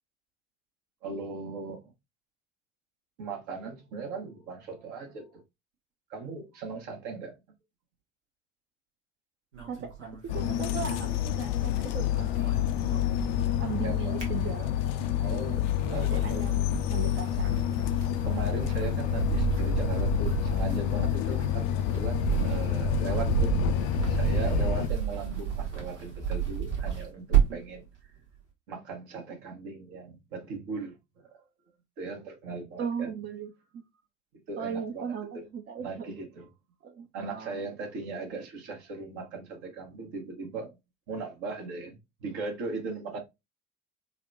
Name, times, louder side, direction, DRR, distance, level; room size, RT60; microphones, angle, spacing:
voice 1, 1.0-1.9 3.2-5.4 6.1-7.4 12.0-12.3 13.8-14.2 15.2-16.4 18.2-23.6 24.0-27.8 28.7-31.0 32.0-33.1 34.3-35.4 35.8-36.5 37.1-40.8 41.1-43.2, right 4 dB, 60° right, 1.1 m, -38 dB
sound 1, 9.5-11.7 12.0-13.6 13.9-15.0 15.5-27.7, right 9 dB, 85° right, 0.9 m, -31 dB
voice 2, 9.7-12.5 13.6-14.7 15.9-17.6 32.8-33.8 34.6-36.1 36.8-37.6 38.3-38.4, right 7 dB, 30° right, 0.5 m, -38 dB
sound 2, 10.3-24.9, left 11 dB, 60° left, 0.5 m, -28 dB
4.0 x 2.2 x 2.5 m
figure-of-eight pair, 55°, 35 cm